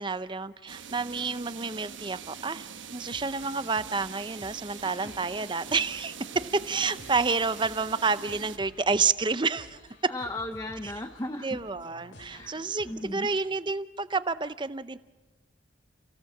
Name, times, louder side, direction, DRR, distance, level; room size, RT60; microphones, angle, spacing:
voice 1, 0.0-2.7 2.9-6.1 6.6-10.1 10.8-10.9 11.4-15.0, right 4 dB, 25° right, 14 dB, 0.6 m, -29 dB
sound 1, 0.7-8.6, right 7 dB, 75° right, 1.1 m, -43 dB
sound 2, 3.1-13.4, left 1 dB, 70° left, 2.7 m, -52 dB
voice 2, 10.1-11.6 12.2-13.3, left 1 dB, 20° left, 6 dB, 0.7 m, -36 dB
29.0 x 16.5 x 7.3 m, 1.2 s
head